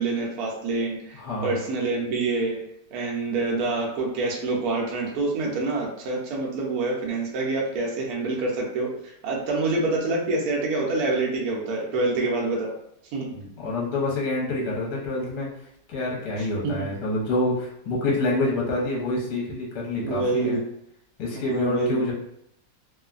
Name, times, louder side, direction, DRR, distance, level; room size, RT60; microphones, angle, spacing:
voice 1, 0.0-2.6 2.9-12.7 13.1-13.3 16.4-16.9 19.9-20.6 21.3-22.0, right 3 dB, 65° right, -2 dB, 1.0 m, -26 dB
voice 2, 1.2-1.5 13.3-15.5 15.9-20.6 21.2-22.1, left 2 dB, 65° left, -4 dB, 1.2 m, -27 dB
3.0 x 2.1 x 2.4 m, 0.75 s
omnidirectional pair, 2.0 m